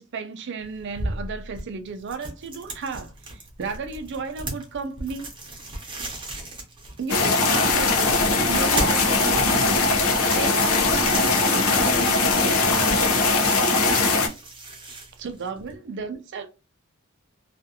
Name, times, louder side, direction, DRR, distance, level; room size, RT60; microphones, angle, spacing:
voice 1, 0.0-5.6 7.0-9.7 10.2-12.7 15.2-16.5, right 5 dB, 55° right, 0.5 m, -34 dB
sound 1, 0.6-15.7, right 2 dB, 25° right, 0.8 m, -36 dB
sound 2, 7.1-14.3, left 3 dB, 85° left, 0.6 m, -20 dB
2.5 x 2.4 x 2.6 m
head